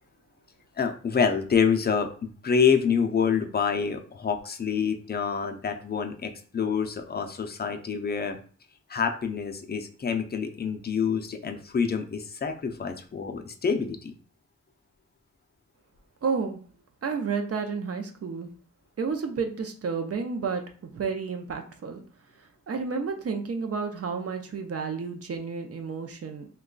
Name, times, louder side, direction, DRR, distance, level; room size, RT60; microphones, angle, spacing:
voice 1, 0.8-2.1 2.4-8.4 8.9-14.1, left 6 dB, 35° left, 6 dB, 0.4 m, -27 dB
voice 2, 16.2-16.6 17.0-18.5 19.0-20.6 20.9-22.0 22.7-26.5, right 5 dB, 55° right, 5 dB, 0.5 m, -31 dB
3.0 x 2.3 x 3.7 m, 0.42 s
wide cardioid pair, 145°, 29 cm